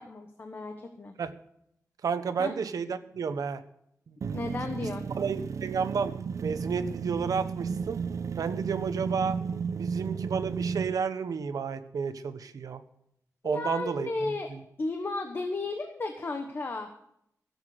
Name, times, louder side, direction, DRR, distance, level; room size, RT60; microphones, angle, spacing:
voice 1, 0.0-1.2 2.4-2.5 4.3-5.1 13.4-14.5 14.8-16.9, left 3 dB, 40° left, 6 dB, 1.1 m, -34 dB
voice 2, 2.0-3.6 4.8-4.9 5.2-6.1 6.4-8.0 8.4-9.4 9.7-12.8 13.4-14.6, right 6 dB, 90° right, 11 dB, 1.0 m, -31 dB
sound 1, 4.2-11.0, right 6 dB, 65° right, 0.5 m, -34 dB
16.5 x 8.2 x 6.6 m, 0.74 s
wide cardioid pair, 150°, 6 cm